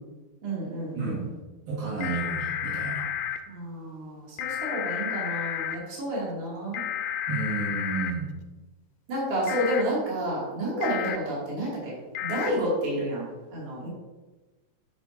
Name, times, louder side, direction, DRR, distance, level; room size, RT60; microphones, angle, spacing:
voice 1, 0.4-1.3 3.5-6.8 9.1-11.9 12.2-13.3 13.5-13.9, right 1 dB, 40° right, -6 dB, 3.0 m, -30 dB
voice 2, 1.7-3.1 7.3-8.3, right 4 dB, 70° right, -5 dB, 3.4 m, -31 dB
sound 1, 2.0-3.4 4.4-5.8 6.7-8.1 9.5-9.8 10.8-11.2 12.1-12.5, left 10 dB, 80° left, 2.3 m, -31 dB
8.7 x 7.2 x 2.7 m, 1.2 s
omnidirectional pair, 4.5 m